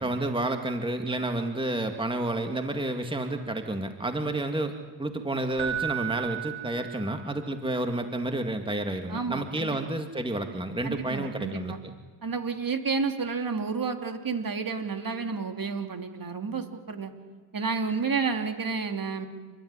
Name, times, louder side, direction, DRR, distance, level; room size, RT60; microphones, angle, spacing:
voice 1, 0.0-4.7 5.0-12.0, right 1 dB, 10° right, 5 dB, 2.2 m, -30 dB
Keyboard (musical), 5.6-7.5 10.8-11.0, right 12 dB, 70° right, 4.2 m, -34 dB
voice 2, 9.1-9.8 10.8-11.8 12.2-17.1 17.5-19.3, right 5 dB, 40° right, 6 dB, 2.9 m, -30 dB
29.5 x 13.0 x 9.8 m, 1.5 s
cardioid pair, 70°, 49 cm